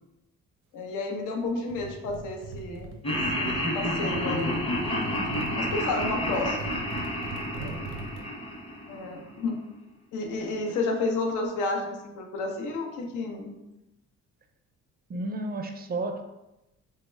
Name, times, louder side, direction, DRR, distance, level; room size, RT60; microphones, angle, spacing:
voice 1, 0.7-4.6 5.0-5.2 5.6-6.7 8.9-9.6 10.1-13.5, left 3 dB, 80° left, 2 dB, 0.7 m, -31 dB
sound 1, 1.7-8.2, right 3 dB, 90° right, 0.6 m, -41 dB
Laughter, 3.0-9.2, left 1 dB, 20° left, 0.6 m, -30 dB
voice 2, 5.3-5.7 7.6-7.8 15.1-16.2, right 2 dB, 30° right, 6 dB, 0.4 m, -33 dB
3.3 x 2.1 x 3.2 m, 0.96 s
cardioid pair, 90°, 30 cm